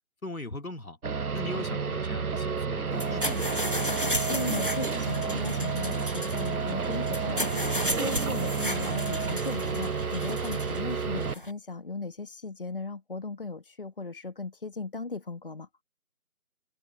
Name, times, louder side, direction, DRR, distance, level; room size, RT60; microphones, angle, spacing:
voice 1, 0.2-1.0 1.3-3.8, left 2 dB, 75° left, 2.5 m, -39 dB
sound 1, 1.0-11.3, right 5 dB, 90° right, 0.8 m, -30 dB
voice 2, 1.5-1.8 4.3-15.7, left 3 dB, 40° left, 1.8 m, -37 dB
sound 2, 2.9-11.5, equal, 40° right, 0.5 m, -34 dB
figure-of-eight pair, 165°, 43 cm